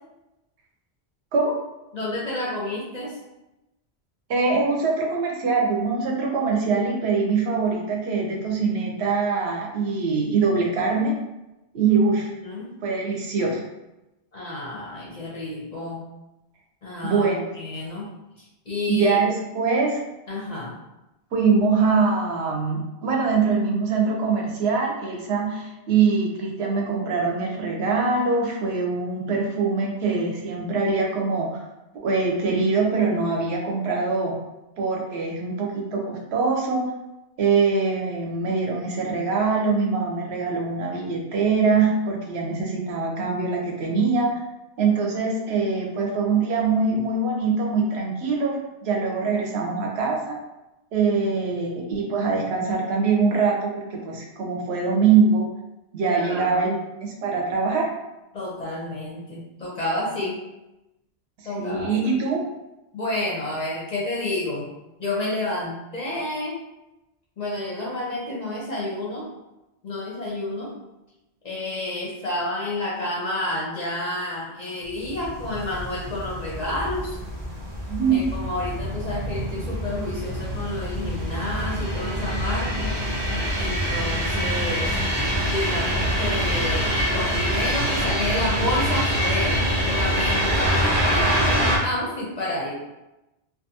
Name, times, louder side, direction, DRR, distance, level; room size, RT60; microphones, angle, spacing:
voice 1, 1.9-3.2 12.4-12.7 14.3-16.0 16.8-17.3 17.5-18.1 18.4-19.2 20.3-20.7 56.1-56.6 58.3-60.4 61.4-61.9 62.9-64.7 65.0-66.6 67.4-69.3 69.8-70.7 71.4-77.2 78.1-82.9 83.6-84.9 85.5-92.8, left 2 dB, 50° left, -5 dB, 0.5 m, -30 dB
voice 2, 4.3-11.1 11.7-12.3 12.8-13.6 17.0-17.5 18.9-20.0 21.3-31.6 32.0-34.4 34.8-36.9 37.4-44.3 44.8-50.4 50.9-55.5 55.9-57.9 61.4-62.4 77.9-78.3, right 4 dB, 70° right, 0 dB, 0.8 m, -23 dB
sound 1, 75.0-91.8, equal, 35° right, 0.5 m, -25 dB
2.5 x 2.3 x 2.7 m, 0.97 s
omnidirectional pair, 1.1 m